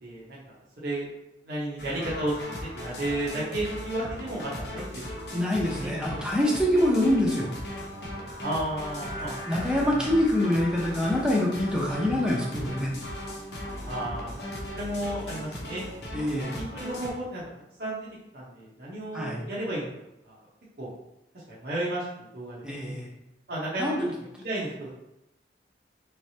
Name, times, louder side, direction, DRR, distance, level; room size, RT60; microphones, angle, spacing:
voice 1, 0.0-1.1 1.4-2.4 2.7-5.3 5.8-5.9 8.4-10.0 13.8-15.8 16.6-17.4 17.8-18.1 18.3-19.9 20.2-20.4 20.8-20.9 21.5-22.6 23.5-24.1 24.4-24.9, right 1 dB, 60° right, -8 dB, 1.0 m, -33 dB
sound 1, 1.8-17.1, equal, 70° left, 0.8 m, -37 dB
voice 2, 5.3-7.5 9.5-12.9 16.1-16.5 19.1-19.4 22.6-23.1 23.8-24.1, left 1 dB, 5° right, -3 dB, 0.7 m, -25 dB
3.8 x 3.3 x 2.8 m, 0.88 s
head